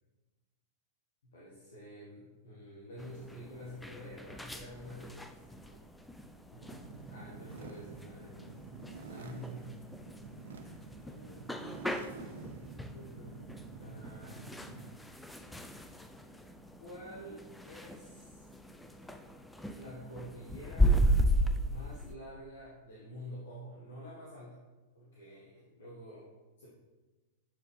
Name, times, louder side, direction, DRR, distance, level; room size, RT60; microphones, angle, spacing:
voice 1, 1.2-5.8 6.5-6.8 7.1-8.6 9.1-9.6 10.0-10.2 11.0-11.5 12.9-14.4 16.8-18.5 19.7-21.0 21.6-24.6 24.9-26.3 26.6-26.7, equal, 70° left, -6 dB, 1.4 m, -48 dB
sound 1, 3.0-22.2, equal, 5° left, 0.4 m, -36 dB
sound 2, 6.6-15.1, right 4 dB, 75° right, 0.5 m, -49 dB
6.8 x 4.5 x 3.2 m, 1.2 s
hypercardioid pair, 105°, 0 cm